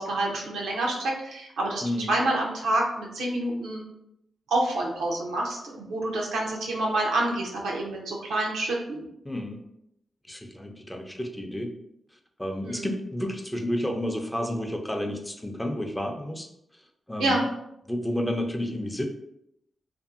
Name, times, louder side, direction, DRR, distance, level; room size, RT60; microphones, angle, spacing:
voice 1, 0.0-1.8 2.1-3.8 4.5-9.1 12.6-12.9 17.2-17.5, right 1 dB, 90° right, -1 dB, 0.6 m, -27 dB
voice 2, 1.8-2.1 9.2-9.6 10.3-11.7 12.4-16.5 17.1-17.4 17.9-19.0, left 1 dB, 10° left, 3 dB, 0.5 m, -31 dB
2.6 x 2.6 x 2.5 m, 0.79 s
supercardioid pair, 45°, 0 cm